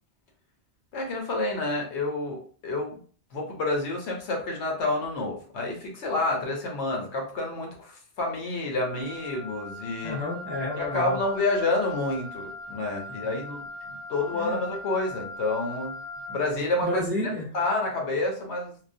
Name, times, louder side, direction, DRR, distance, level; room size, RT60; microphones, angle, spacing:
voice 1, 0.9-3.0 3.3-10.2 10.8-16.0 16.3-17.0 17.5-18.8, left 2 dB, 85° left, 1 dB, 1.1 m, -29 dB
Wind instrument woodwind instrument, 8.8-16.5, left 1 dB, 65° right, 0.7 m, -40 dB
voice 2, 10.0-11.2 14.3-14.6 16.8-17.5, left 1 dB, 15° right, -6 dB, 0.4 m, -30 dB
2.4 x 2.1 x 2.6 m, 0.43 s
omnidirectional pair, 1.1 m